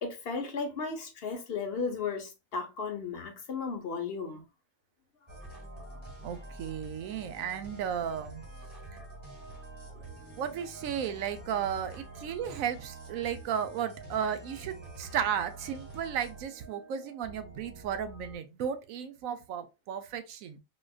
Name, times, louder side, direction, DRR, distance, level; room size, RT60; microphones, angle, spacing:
voice 1, 0.0-4.4, left 5 dB, 55° left, 0.9 m, -35 dB
sound 1, 5.3-18.4, right 2 dB, 20° right, 1.3 m, -47 dB
voice 2, 6.2-8.4 10.4-20.6, right 8 dB, 80° right, 1.0 m, -34 dB
4.1 x 2.4 x 2.3 m
omnidirectional pair, 1.4 m